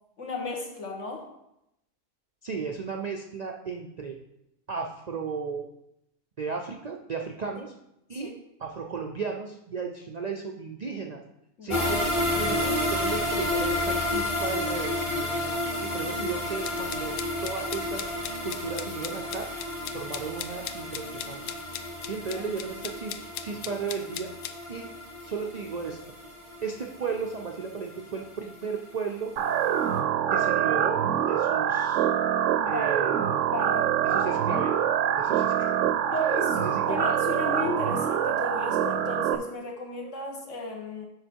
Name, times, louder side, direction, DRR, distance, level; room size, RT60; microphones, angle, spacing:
voice 1, 0.2-1.3 8.2-8.3 11.6-12.1 32.6-33.0 33.5-33.9 36.1-41.1, left 2 dB, 65° left, 1 dB, 1.6 m, -34 dB
voice 2, 2.4-4.2 4.7-5.7 6.4-7.7 8.1-8.3 8.6-11.2 11.6-15.3 15.8-18.1 18.4-19.5 19.9-23.2 23.4-24.3 24.7-24.9 25.2-26.0 26.6-29.3 30.3-32.1 32.7-33.4 34.0-34.7 35.2-35.7 36.3-37.1, right 5 dB, 55° right, 2 dB, 0.4 m, -35 dB
sound 1, 11.7-28.8 29.1-29.2 29.6-29.7, left 1 dB, 25° left, 1.2 m, -31 dB
sound 2, 16.6-24.5, left 10 dB, 80° left, 1.0 m, -39 dB
sound 3, 29.4-39.4, right 9 dB, 75° right, 0.9 m, -25 dB
6.6 x 5.8 x 4.5 m, 0.84 s
omnidirectional pair, 1.4 m